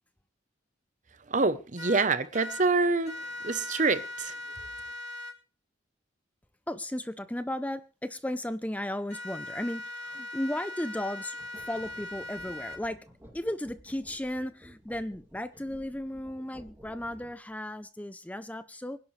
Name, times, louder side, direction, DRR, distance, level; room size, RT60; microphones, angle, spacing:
voice 1, 1.3-3.1 3.4-4.3, right 3 dB, 40° right, 0.9 m, -26 dB
sound 1, 1.8-2.6 3.0-5.3 9.1-12.8, left 2 dB, 35° left, 3.5 m, -40 dB
voice 2, 6.7-13.0 13.3-19.0, left 1 dB, 10° left, 0.6 m, -35 dB
sound 2, 11.4-17.5, equal, 15° right, 2.7 m, -54 dB
25.0 x 11.0 x 3.3 m
head